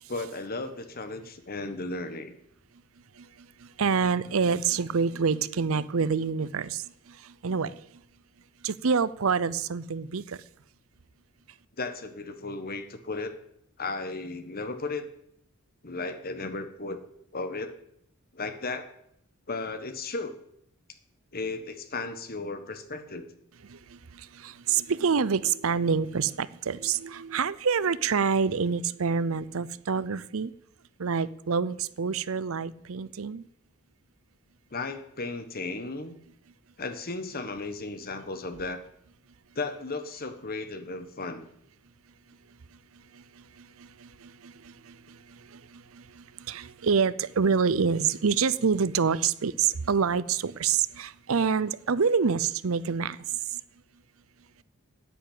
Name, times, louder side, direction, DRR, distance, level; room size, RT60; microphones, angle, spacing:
voice 1, 0.1-2.3 11.8-13.3 13.8-15.1 15.8-17.0 17.3-17.7 18.3-18.9 19.5-20.3 21.3-23.3 34.7-36.2 36.8-38.8 39.5-41.5, left 3 dB, 45° left, 9 dB, 1.4 m, -35 dB
voice 2, 3.8-6.8 7.4-7.7 8.6-10.2 24.4-30.5 31.0-33.4 46.5-53.2, right 6 dB, 65° right, 18 dB, 0.6 m, -26 dB
10.0 x 9.2 x 8.9 m, 0.75 s
head